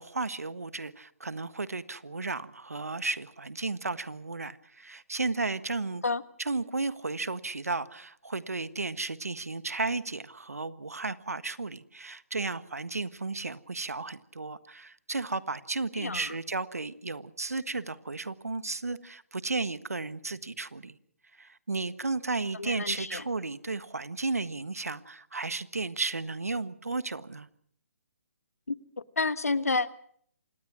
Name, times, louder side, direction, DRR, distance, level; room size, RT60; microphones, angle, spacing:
voice 1, 0.0-6.0 6.4-21.0 21.3-27.5, right 3 dB, 80° right, 1.5 m, -34 dB
voice 2, 16.0-16.3 22.6-23.2 28.7-28.8 29.2-29.9, left 3 dB, 80° left, 1.3 m, -29 dB
26.5 x 19.0 x 6.1 m
figure-of-eight pair, 140°, 8 cm